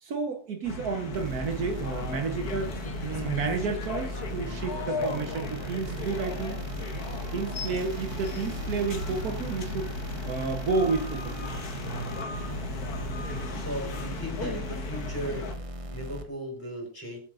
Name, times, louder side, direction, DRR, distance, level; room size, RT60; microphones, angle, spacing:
voice 1, 0.0-6.6 7.3-9.9 10.2-11.5, right 4 dB, 70° right, 1.5 m, -31 dB
sound 1, 0.6-15.5, left 2 dB, 70° left, 1.8 m, -36 dB
sound 2, 1.1-16.2, equal, 30° right, 0.7 m, -39 dB
voice 2, 13.5-15.5 15.9-17.2, equal, 10° left, 4.3 m, -36 dB
22.0 x 7.4 x 2.5 m
omnidirectional pair, 1.7 m